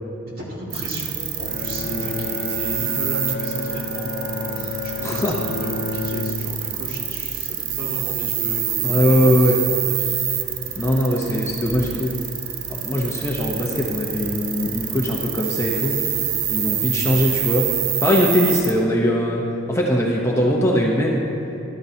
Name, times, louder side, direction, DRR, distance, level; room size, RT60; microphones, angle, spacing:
voice 1, 0.4-9.5 9.9-10.1, equal, 45° right, -5 dB, 2.1 m, -34 dB
sound 1, 0.7-18.7, right 9 dB, 80° right, 0.7 m, -27 dB
Bowed string instrument, 1.5-6.9, left 4 dB, 40° left, 0.3 m, -30 dB
voice 2, 5.0-5.3 8.8-9.6 10.8-12.1 12.7-15.9 16.5-17.7 18.0-19.4 19.7-21.2, equal, 15° left, -3 dB, 0.7 m, -20 dB
13.0 x 12.5 x 2.7 m, 2.9 s
head